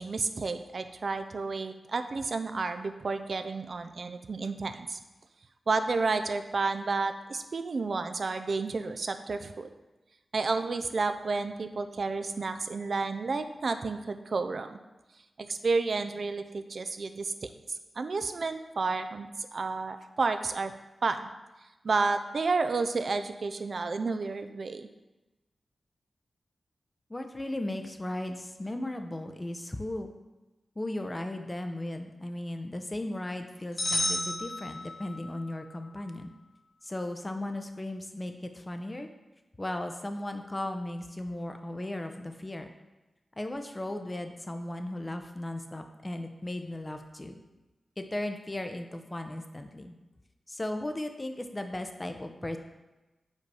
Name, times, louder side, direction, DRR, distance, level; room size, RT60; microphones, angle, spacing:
voice 1, 0.0-5.0 5.7-9.7 10.3-14.8 15.4-17.5 18.0-20.7 21.0-21.3 21.8-24.9, right 4 dB, 65° right, 9 dB, 0.4 m, -31 dB
voice 2, 27.1-30.1 30.8-36.3 36.8-39.1 39.6-42.7 43.4-47.4 48.0-50.0 50.5-52.6, left 1 dB, 25° left, 6 dB, 0.6 m, -36 dB
sound 1, 33.8-35.3, left 1 dB, 75° left, 1.3 m, -31 dB
5.3 x 3.9 x 4.7 m, 1.1 s
cardioid pair, 50°, 0 cm